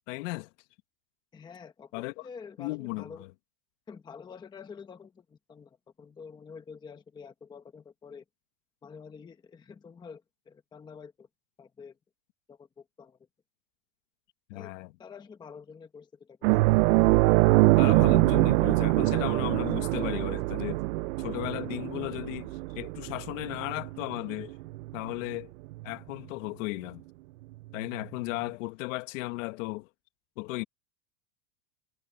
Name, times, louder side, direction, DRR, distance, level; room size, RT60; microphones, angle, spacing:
voice 1, 0.1-0.5 1.9-2.3 2.6-3.1 14.5-14.9 17.7-20.8 21.2-24.5 24.9-25.5 25.8-27.0 27.7-29.9 30.4-30.6, left 22 dB, 55° left, 1.4 m, -35 dB
voice 2, 1.3-3.2 3.9-8.2 8.8-11.3 11.6-12.0 12.5-13.2 14.5-14.7 15.0-16.7, left 6 dB, 10° left, 0.9 m, -48 dB
sound 1, 16.4-25.4 25.7-25.9 28.0-28.1, right 21 dB, 60° right, 0.6 m, -24 dB
supercardioid pair, 155°, 47 cm